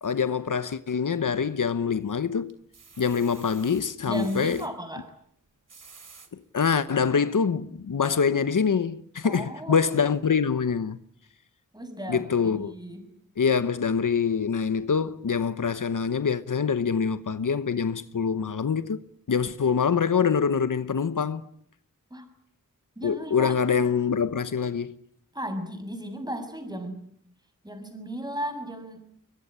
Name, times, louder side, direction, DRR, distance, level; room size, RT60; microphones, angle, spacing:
voice 1, 0.0-2.6 3.0-4.6 6.3-11.0 12.1-12.7 13.4-21.5 23.0-24.9, left 6 dB, 75° left, 1.1 m, -25 dB
sound 1, 1.4-2.0 2.5-4.7 5.5-6.3 6.9-7.0 7.3-7.4, right 5 dB, 75° right, 2.9 m, -51 dB
voice 2, 4.1-5.1 9.2-9.9 11.7-13.0 22.1-22.3 23.0-23.5 25.3-27.0 27.6-29.0, equal, 15° right, 6.6 m, -35 dB
23.0 x 22.0 x 10.0 m
wide cardioid pair, 75°, 32 cm